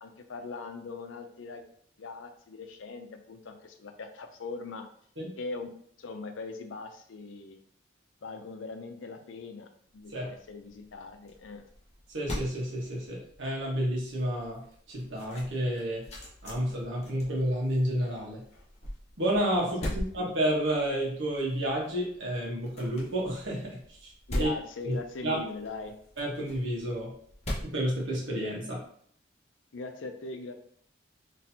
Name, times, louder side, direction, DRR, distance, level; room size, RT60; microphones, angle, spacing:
voice 1, 0.0-1.6 2.0-4.9 5.4-5.7 6.0-7.6 8.2-11.6 19.6-19.9 24.3-25.9 29.7-30.5, left 4 dB, 85° left, 6 dB, 0.6 m, -41 dB
sound 1, 10.0-28.7, left 1 dB, 35° left, 1.2 m, -42 dB
voice 2, 12.1-14.6 14.9-16.0 16.4-18.4 19.2-24.1 24.4-24.5 24.9-25.0 25.2-25.4 26.2-27.1 27.6-28.8, right 1 dB, 75° right, -2 dB, 1.3 m, -30 dB
4.3 x 3.0 x 2.8 m, 0.62 s
head